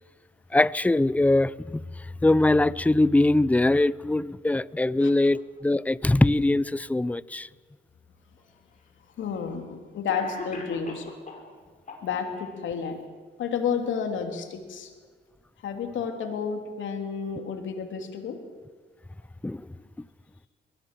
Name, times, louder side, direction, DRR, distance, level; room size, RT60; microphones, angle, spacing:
voice 1, 0.5-1.8 2.2-7.5 19.4-19.7, left 2 dB, 5° left, 0.5 m, -22 dB
Cough, 8.4-8.5 9.5-9.6 10.1-11.5 11.9-12.5, left 3 dB, 40° left, 5.8 m, -40 dB
voice 2, 9.2-11.1 12.0-13.0 13.4-14.9 15.6-18.4, left 6 dB, 75° left, 3.3 m, -31 dB
23.0 x 19.5 x 7.6 m
cardioid pair, 90°, 20 cm